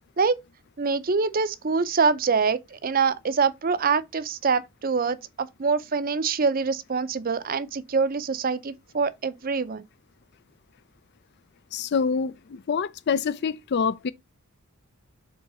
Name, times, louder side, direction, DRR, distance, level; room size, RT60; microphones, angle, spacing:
voice 1, 0.8-9.8, right 5 dB, 40° right, 0.5 m, -25 dB
voice 2, 11.7-14.1, left 6 dB, 50° left, 0.4 m, -26 dB
5.4 x 4.0 x 4.7 m
head